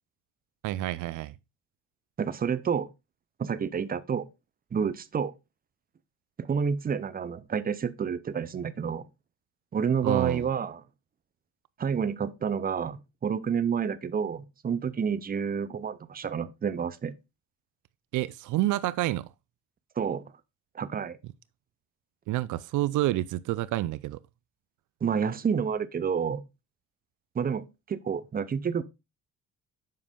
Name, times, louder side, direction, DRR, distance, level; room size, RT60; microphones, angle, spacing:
voice 1, 0.6-1.3 10.0-10.5 18.1-19.3 22.3-24.2, right 16 dB, 80° right, 0.5 m, -28 dB
voice 2, 2.2-2.9 3.4-4.3 4.7-5.3 6.4-9.1 9.7-10.8 11.8-17.1 20.0-20.3 20.7-21.2 25.0-26.4 27.3-28.8, right 7 dB, 30° right, 0.6 m, -29 dB
7.4 x 5.4 x 3.6 m
cardioid pair, 90°, 30 cm